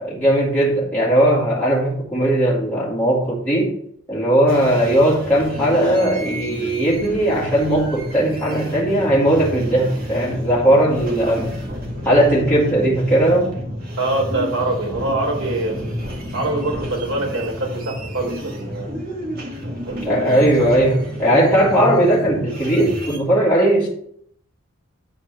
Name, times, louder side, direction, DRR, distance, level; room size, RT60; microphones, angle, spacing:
voice 1, 0.0-3.7 4.1-11.5 12.0-13.5 20.0-23.9, right 1 dB, 10° left, -9 dB, 2.3 m, -18 dB
sound 1, 4.5-23.2, equal, 45° right, 1.9 m, -30 dB
voice 2, 14.0-16.0 16.3-18.9 19.9-21.0, right 2 dB, 85° right, 0 dB, 3.7 m, -25 dB
10.0 x 4.4 x 6.7 m, 0.66 s
head